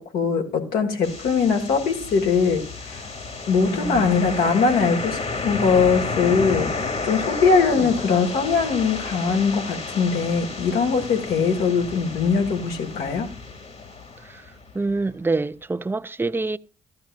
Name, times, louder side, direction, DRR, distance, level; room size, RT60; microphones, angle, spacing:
voice 1, 0.0-3.1 3.5-13.3, left 5 dB, 75° left, 1.8 m, -21 dB
sound 1, 1.0-14.9, left 3 dB, 45° left, 1.9 m, -32 dB
voice 2, 3.6-4.2 7.8-7.9 14.2-14.4 14.7-16.6, right 3 dB, 15° right, 0.5 m, -26 dB
14.5 x 11.5 x 2.5 m
hypercardioid pair, 50°, 16 cm